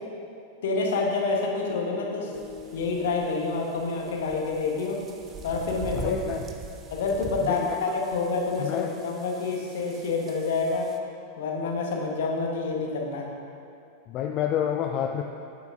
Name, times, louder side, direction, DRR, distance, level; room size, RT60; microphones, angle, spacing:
voice 1, 0.6-2.3 2.7-5.0 5.4-6.1 6.9-10.9 11.4-13.3, left 4 dB, 55° left, 0 dB, 1.1 m, -28 dB
sound 1, 1.7-10.1 10.6-10.7, left 4 dB, 5° right, 1.2 m, -48 dB
sound 2, 2.3-11.0, right 5 dB, 25° right, 0.5 m, -43 dB
voice 2, 5.9-6.4 7.4-7.8 8.6-8.9 14.1-15.2, left 9 dB, 35° left, 4 dB, 0.3 m, -28 dB
8.6 x 8.3 x 2.6 m, 2.5 s
figure-of-eight pair, 90°, 0 cm